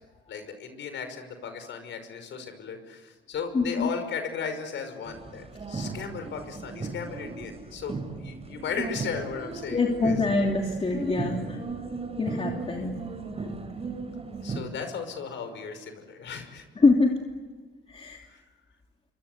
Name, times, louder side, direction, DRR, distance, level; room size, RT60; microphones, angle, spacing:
voice 1, 0.3-10.2 14.4-16.6 18.3-18.4, left 6 dB, 70° left, 8 dB, 5.6 m, -36 dB
voice 2, 3.5-3.9 9.7-11.6 12.2-13.0 16.8-17.2 17.9-18.2, left 3 dB, 30° left, 1 dB, 3.0 m, -24 dB
sound 1, 5.0-14.6, right 3 dB, 30° right, 5.3 m, -36 dB
26.0 x 25.0 x 8.2 m, 1.4 s
cardioid pair, 90°, 20 cm